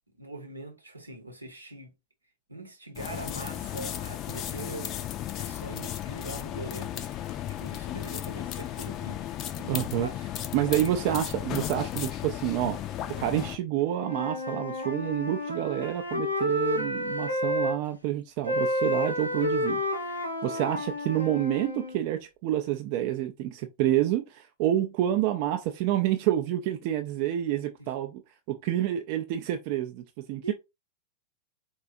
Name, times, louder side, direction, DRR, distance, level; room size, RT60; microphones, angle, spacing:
voice 1, 0.2-1.9 2.5-9.3 10.0-10.2 10.7-10.9 27.8-27.9 30.4-30.5, right 2 dB, 85° right, 0.8 m, -42 dB
sound 1, 2.9-13.6, left 12 dB, 35° left, 0.4 m, -35 dB
voice 2, 9.6-10.1 10.5-28.2 28.5-30.5, right 12 dB, 45° right, 0.4 m, -28 dB
Wind instrument woodwind instrument, 13.8-17.8 18.4-22.0, left 1 dB, 85° left, 0.7 m, -30 dB
4.0 x 2.3 x 2.5 m
figure-of-eight pair, 90°, 0 cm